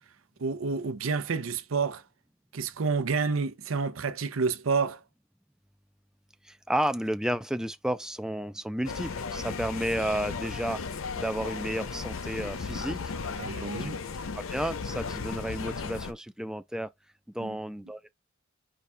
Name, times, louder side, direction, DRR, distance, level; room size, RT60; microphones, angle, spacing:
voice 1, 0.4-2.0 2.5-5.0 13.4-14.0 17.4-17.6, right 4 dB, 90° right, 0.6 m, -29 dB
voice 2, 6.4-10.8 11.2-13.1 13.6-13.9 14.5-16.9 17.3-18.1, right 1 dB, 5° right, 0.3 m, -32 dB
sound 1, 8.8-16.1, left 5 dB, 80° left, 0.6 m, -35 dB
4.9 x 2.3 x 4.3 m
head